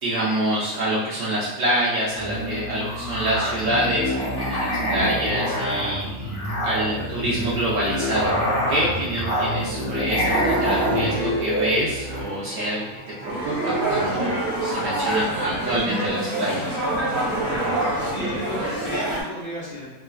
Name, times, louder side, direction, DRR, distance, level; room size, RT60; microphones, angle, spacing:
voice 1, 0.0-6.0 6.6-8.4 8.7-12.9 13.2-16.8, right 1 dB, 70° right, -6 dB, 0.8 m, -26 dB
Musical instrument, 2.1-12.3, equal, 25° left, 1.0 m, -26 dB
sound 1, 10.2-11.4 12.0-19.2, right 1 dB, 45° right, 1.4 m, -26 dB
voice 2, 17.4-19.9, equal, 45° left, -7 dB, 0.5 m, -35 dB
3.0 x 2.3 x 2.2 m, 1.1 s
omnidirectional pair, 1.6 m